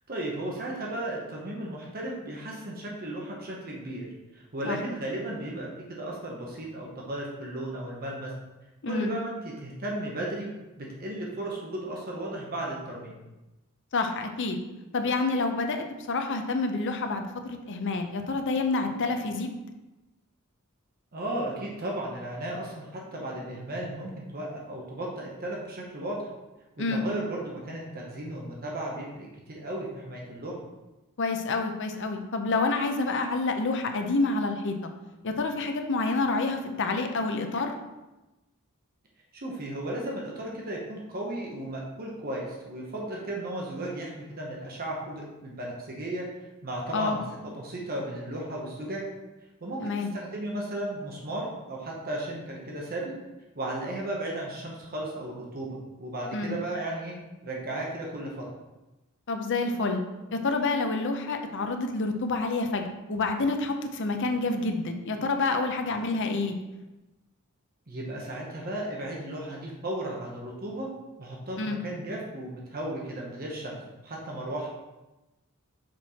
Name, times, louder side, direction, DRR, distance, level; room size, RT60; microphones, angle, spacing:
voice 1, 0.1-4.1 4.3-8.3 8.8-10.5 10.8-13.2 21.1-26.3 26.8-30.5 39.3-46.3 46.6-49.1 49.6-53.1 53.6-57.2 57.4-58.4 67.9-70.9 71.2-74.7, right 1 dB, 45° right, -2 dB, 1.1 m, -35 dB
voice 2, 13.9-14.6 14.9-19.5 26.8-27.0 31.2-34.9 35.2-37.7 46.9-47.2 49.8-50.1 56.3-56.5 59.3-60.0 60.3-66.5 71.6-71.8, left 3 dB, 60° left, 5 dB, 0.7 m, -28 dB
6.0 x 4.6 x 4.3 m, 1.0 s
head